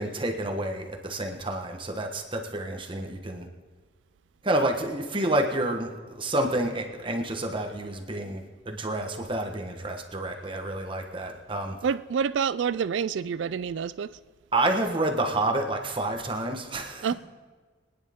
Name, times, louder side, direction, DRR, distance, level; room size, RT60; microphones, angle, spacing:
voice 1, 0.0-3.5 4.4-5.9 6.1-11.7 14.5-17.1, right 1 dB, 25° right, 1.3 m, -29 dB
voice 2, 11.8-14.2 17.0-17.1, right 6 dB, 75° right, 0.3 m, -27 dB
23.5 x 10.0 x 3.7 m
head